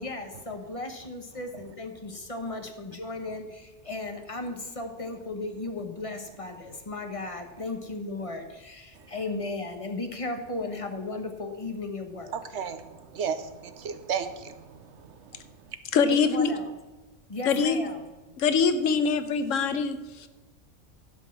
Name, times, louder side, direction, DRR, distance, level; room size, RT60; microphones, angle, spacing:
voice 1, 0.0-12.3 16.1-16.7 17.3-18.0, left 2 dB, 30° left, 5 dB, 1.1 m, -35 dB
voice 2, 12.5-15.3, right 7 dB, 65° right, 10 dB, 1.0 m, -34 dB
voice 3, 15.9-16.5 17.5-17.8 18.4-20.3, left 5 dB, 80° left, 10 dB, 1.2 m, -24 dB
11.5 x 5.4 x 7.3 m, 1.2 s
omnidirectional pair, 1.3 m